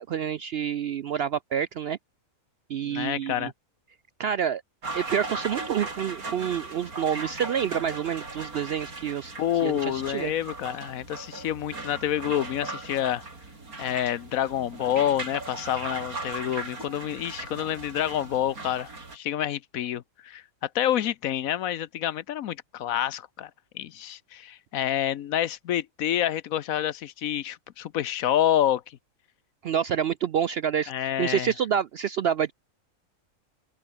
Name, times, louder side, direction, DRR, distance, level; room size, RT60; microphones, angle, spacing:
voice 1, 0.0-2.0 2.7-3.5 4.2-4.6 4.9-9.3 9.6-10.3 29.6-32.5, right 8 dB, 65° right, 0.6 m, -28 dB
voice 2, 2.8-3.5 9.4-13.2 13.8-23.5 23.7-28.8 30.9-31.5, left 11 dB, 75° left, 1.2 m, -28 dB
sound 1, 4.8-19.2, right 3 dB, 85° right, 4.7 m, -38 dB
open air
omnidirectional pair, 1.5 m